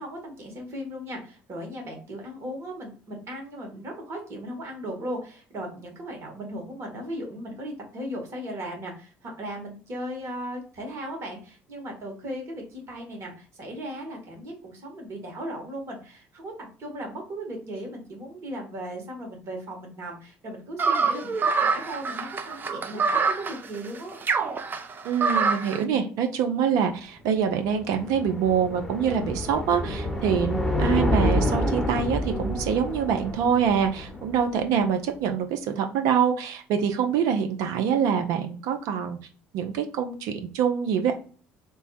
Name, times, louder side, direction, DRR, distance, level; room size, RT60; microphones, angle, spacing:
voice 1, 0.0-24.2, equal, 50° right, 1 dB, 1.9 m, -37 dB
sound 1, 20.8-25.8, right 5 dB, 35° right, 0.7 m, -25 dB
voice 2, 25.0-39.2 39.5-41.1, right 7 dB, 70° right, 6 dB, 0.7 m, -25 dB
sound 2, 27.3-34.7, left 1 dB, 5° left, 0.9 m, -28 dB
3.3 x 2.2 x 4.2 m, 0.40 s
hypercardioid pair, 70°, 6 cm